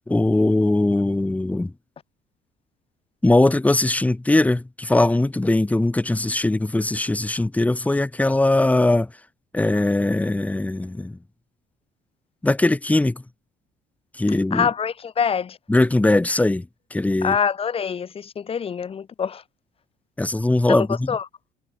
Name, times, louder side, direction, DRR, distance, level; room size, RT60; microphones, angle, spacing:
voice 1, 0.1-1.7 3.2-9.1 9.5-11.1 12.4-13.2 14.2-14.7 15.7-17.4 20.2-21.1, left 2 dB, 10° left, 1.1 m, -20 dB
voice 2, 14.5-15.6 17.2-19.4 20.7-21.3, left 7 dB, 35° left, 1.1 m, -25 dB
cardioid pair, 110°, 17 cm